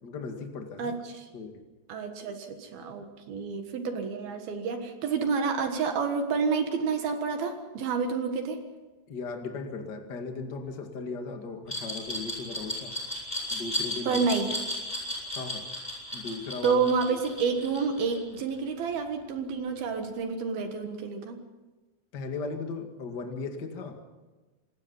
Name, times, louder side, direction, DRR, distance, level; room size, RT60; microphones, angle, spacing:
voice 1, 0.0-0.9 1.3-1.6 9.1-12.9 13.5-14.2 15.3-15.7 16.1-16.8 22.1-24.0, left 4 dB, 80° left, 4 dB, 0.9 m, -37 dB
voice 2, 0.8-1.3 1.9-8.6 14.1-14.5 16.6-21.4, right 5 dB, 60° right, 6 dB, 2.8 m, -29 dB
Glass, 11.7-18.5, left 1 dB, 5° left, 7.2 m, -34 dB
27.0 x 20.0 x 5.6 m, 1.2 s
omnidirectional pair, 5.8 m